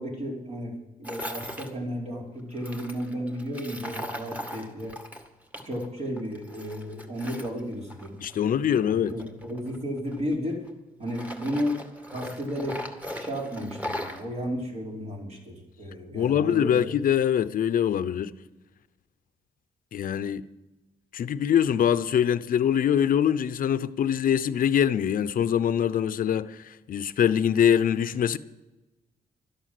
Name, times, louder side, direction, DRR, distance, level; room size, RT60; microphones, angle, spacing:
voice 1, 0.0-5.0 5.6-10.6 11.0-11.8 12.1-12.8 13.1-16.8, equal, 45° right, 4.8 m, -33 dB
Tools, 1.0-1.7 2.6-5.9 6.2-8.4 9.1-10.7 11.1-14.2, left 1 dB, 10° right, 2.0 m, -38 dB
voice 2, 8.2-9.1 16.1-18.3 19.9-20.5 21.1-28.4, left 9 dB, 65° left, 0.7 m, -24 dB
12.5 x 11.0 x 7.8 m
cardioid pair, 100°, 15 cm